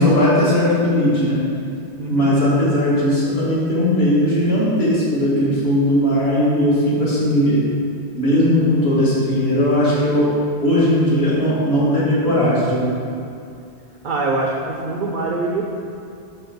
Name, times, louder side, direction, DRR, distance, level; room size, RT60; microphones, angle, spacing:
voice 1, 0.0-1.4 2.1-7.6 8.2-10.3 10.6-12.9, left 1 dB, 60° left, -8 dB, 1.9 m, -17 dB
voice 2, 14.0-15.6, right 3 dB, 55° right, -1 dB, 0.6 m, -23 dB
6.8 x 3.3 x 5.9 m, 2.5 s
omnidirectional pair, 1.2 m